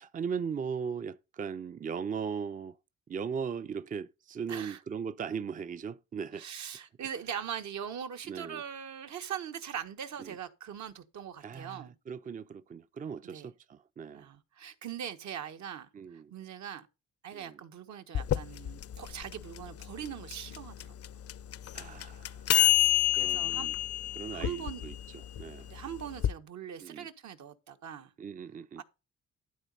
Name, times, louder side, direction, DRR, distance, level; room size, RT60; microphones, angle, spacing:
voice 1, 0.0-2.8 3.1-6.5 8.2-8.6 10.2-10.4 11.4-14.3 15.9-16.3 17.3-17.6 21.7-22.5 23.2-23.8 24.1-25.7 26.8-27.1 28.2-28.8, right 6 dB, 25° right, 0.5 m, -38 dB
voice 2, 4.5-4.8 6.4-11.9 13.3-13.5 14.1-16.9 17.2-20.9 23.1-23.7 24.3-24.8 25.7-28.1 28.8-28.9, right 8 dB, 70° right, 1.4 m, -41 dB
sound 1, 18.1-26.3, left 12 dB, 55° left, 0.5 m, -29 dB
12.5 x 4.2 x 5.4 m
cardioid pair, 90°, 30 cm